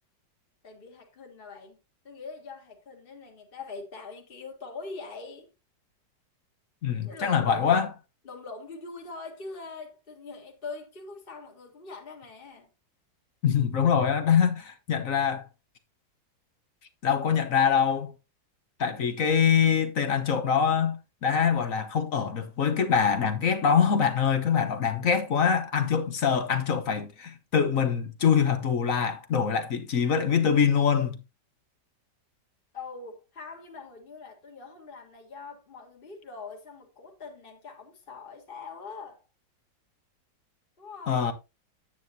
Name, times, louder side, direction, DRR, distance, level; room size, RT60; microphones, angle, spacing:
voice 1, 0.6-1.8 2.0-5.5 7.0-7.7 8.2-12.7 32.7-39.2 40.8-41.3, left 4 dB, 30° left, 2.0 m, -43 dB
voice 2, 6.8-7.9 13.4-15.5 17.0-18.1 18.8-31.2 41.1-41.3, left 7 dB, 50° left, 1.3 m, -24 dB
9.4 x 9.2 x 2.7 m
omnidirectional pair, 1.9 m